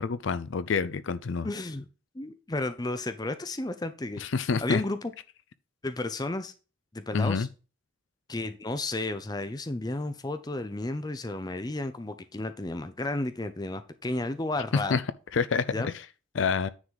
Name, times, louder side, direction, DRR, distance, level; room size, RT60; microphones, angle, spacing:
voice 1, 0.0-1.5 4.2-4.8 7.1-7.5 14.7-15.0 15.3-15.9 16.3-16.7, left 5 dB, 65° left, 0.5 m, -27 dB
voice 2, 1.4-1.9 2.1-4.2 4.6-5.1 5.8-6.5 6.9-7.5 8.3-15.0 15.7-15.9, left 2 dB, 20° left, 0.5 m, -32 dB
9.6 x 3.9 x 4.6 m
head